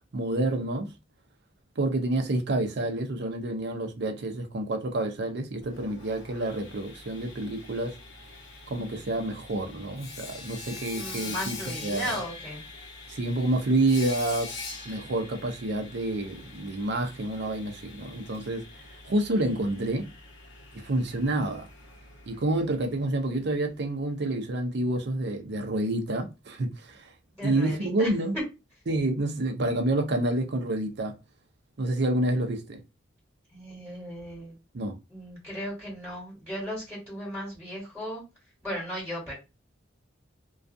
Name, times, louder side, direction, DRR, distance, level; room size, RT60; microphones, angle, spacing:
voice 1, 0.1-0.9 1.8-8.0 8.7-11.6 11.8-12.2 13.1-14.5 14.8-18.7 19.1-20.1 20.8-21.7 22.3-27.1 27.4-28.4 28.9-31.1 31.8-32.8 34.7-34.9, right 1 dB, 60° right, 0.5 m, -28 dB
Sawing, 5.6-23.4, left 3 dB, 75° left, 0.8 m, -44 dB
voice 2, 10.9-12.6 27.4-28.1 33.5-34.5 35.1-38.2 38.6-39.3, equal, ahead, 1.3 m, -36 dB
2.3 x 2.3 x 2.5 m
head